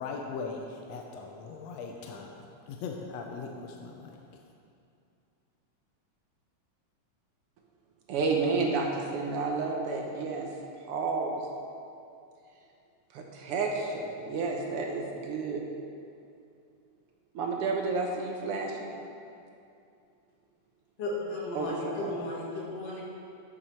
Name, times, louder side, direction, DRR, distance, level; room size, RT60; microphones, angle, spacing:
voice 1, 0.0-4.4, left 4 dB, 70° left, 2 dB, 1.7 m, -40 dB
voice 2, 8.1-10.5 10.9-11.4 13.1-15.6 17.3-18.9 21.5-22.1, right 4 dB, 70° right, 1 dB, 1.4 m, -31 dB
voice 3, 21.0-23.0, left 2 dB, 55° left, -4 dB, 2.6 m, -35 dB
11.5 x 7.6 x 4.3 m, 2.5 s
omnidirectional pair, 3.5 m